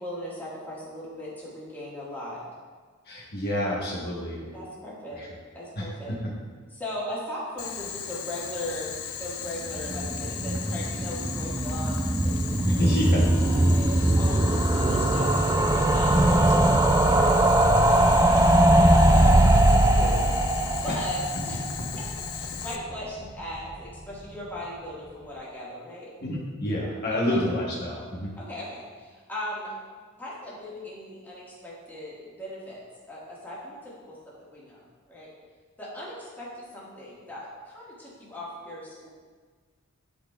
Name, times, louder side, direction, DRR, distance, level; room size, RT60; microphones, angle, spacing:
voice 1, 0.0-2.4 4.5-5.3 5.5-6.1 6.7-8.9 9.2-20.5 20.8-21.6 22.3-26.1 27.1-27.4 28.4-29.7 30.2-34.8 35.1-35.3 35.8-39.1, equal, 10° left, -7 dB, 1.5 m, -38 dB
voice 2, 3.1-4.5 5.2-5.3 5.8-5.9 12.7-13.2 20.9-21.0 26.2-28.3, left 1 dB, 50° left, -4 dB, 1.0 m, -28 dB
Boiling, 7.6-22.7, left 8 dB, 75° left, 0.5 m, -37 dB
sound 1, 9.7-22.7 23.0-23.1 23.3-23.4 23.6-23.7, right 1 dB, 15° right, 0.3 m, -21 dB
11.0 x 4.0 x 2.2 m, 1.5 s
head